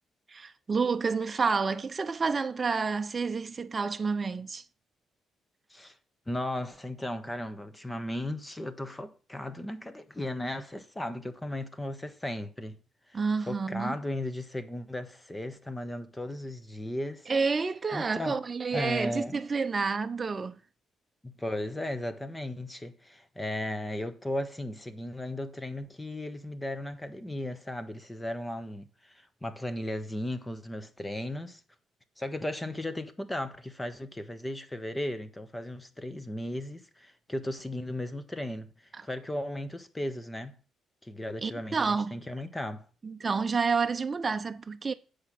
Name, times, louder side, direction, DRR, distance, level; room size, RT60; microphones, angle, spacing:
voice 1, 0.3-4.6 13.1-13.9 17.3-20.6 38.9-39.0 41.4-42.1 43.0-44.9, right 4 dB, 30° right, 0.7 m, -29 dB
voice 2, 6.3-12.8 13.1-13.2 13.5-17.3 17.9-18.4 18.7-19.4 21.2-31.6 32.2-40.6 41.0-42.8, left 1 dB, 15° left, 1.1 m, -36 dB
8.0 x 5.1 x 6.0 m
cardioid pair, 90°, 0 cm